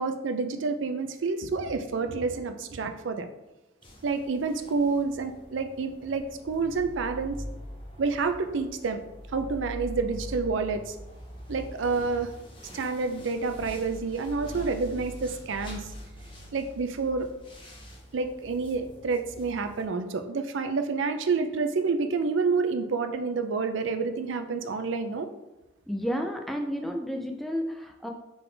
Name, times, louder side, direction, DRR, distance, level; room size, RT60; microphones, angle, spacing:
voice 1, 0.0-3.3 4.0-7.4 8.0-9.0 9.3-10.9 11.5-12.3 12.7-15.9 16.5-17.3 18.1-25.3, right 4 dB, 85° right, 7 dB, 0.5 m, -28 dB
sound 1, 3.8-19.8, equal, 25° left, 0.7 m, -43 dB
voice 2, 25.9-28.1, equal, ahead, 2 dB, 0.4 m, -31 dB
3.9 x 3.8 x 3.3 m, 1.0 s
head